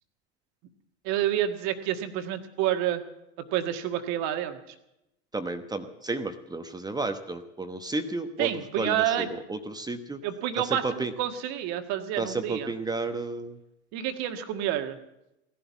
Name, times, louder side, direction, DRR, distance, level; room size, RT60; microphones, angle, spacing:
voice 1, 1.0-3.0 3.4-4.7 8.4-9.3 10.2-12.7 13.9-15.0, right 11 dB, 50° right, 7 dB, 1.7 m, -29 dB
voice 2, 5.3-10.2 10.6-11.1 12.2-13.6, right 3 dB, 10° right, 8 dB, 1.1 m, -32 dB
17.0 x 11.5 x 7.1 m, 0.88 s
hypercardioid pair, 85°, 35 cm